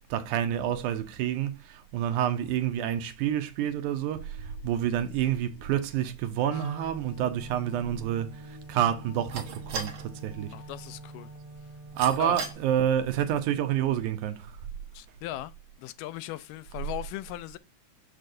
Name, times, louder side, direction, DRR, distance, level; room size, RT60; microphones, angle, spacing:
voice 1, 0.1-10.6 11.9-14.6, right 10 dB, 80° right, 2.1 m, -28 dB
sound 1, 3.7-11.4 12.1-12.2 13.2-13.3, left 11 dB, 75° left, 2.1 m, -57 dB
sound 2, 6.1-12.5, right 4 dB, 55° right, 1.5 m, -43 dB
Wind instrument woodwind instrument, 6.4-12.7, right 2 dB, 30° right, 0.6 m, -45 dB
voice 2, 10.5-11.3 12.2-12.4 14.9-15.5 15.8-17.6, left 14 dB, 90° left, 2.2 m, -38 dB
6.7 x 6.3 x 2.6 m
omnidirectional pair, 3.7 m